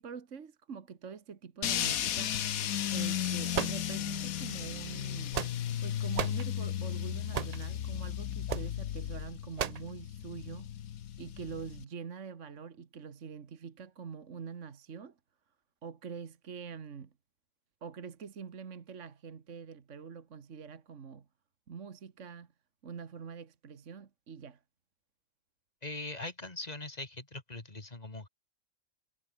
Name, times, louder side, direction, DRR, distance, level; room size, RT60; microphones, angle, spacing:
voice 1, 0.0-2.4 2.9-5.4 5.8-10.7 11.2-15.2 15.8-17.1 17.8-21.3 21.7-22.5 22.8-24.6, right 6 dB, 60° right, 1.8 m, -45 dB
sound 1, 1.6-11.8, left 10 dB, 85° left, 1.3 m, -35 dB
sound 2, 3.5-4.3 5.0-5.8 6.1-6.5 7.3-7.7 8.5-8.7 9.6-9.9, right 8 dB, 75° right, 0.3 m, -34 dB
voice 2, 25.8-28.3, left 2 dB, 30° left, 2.5 m, -41 dB
omnidirectional pair, 1.5 m